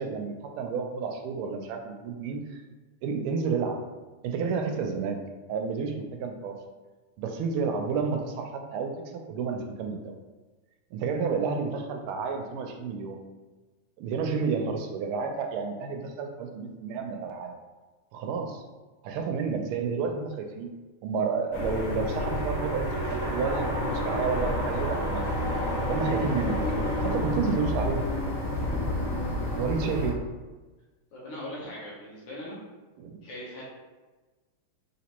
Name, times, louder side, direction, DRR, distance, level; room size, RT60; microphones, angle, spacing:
voice 1, 0.0-2.6 3.0-3.8 4.2-5.2 5.5-6.6 7.2-10.1 10.9-13.2 14.0-17.6 18.1-18.6 19.0-20.7 21.0-25.3 25.9-26.7 27.0-28.0 29.6-30.2 33.0-33.2, right 5 dB, 85° right, 3 dB, 1.5 m, -30 dB
sound 1, 21.5-30.1, left 1 dB, 50° left, 1.4 m, -29 dB
voice 2, 31.1-32.6 33.2-33.6, left 1 dB, 80° left, -7 dB, 2.0 m, -40 dB
5.1 x 3.5 x 3.0 m, 1.2 s
omnidirectional pair, 2.3 m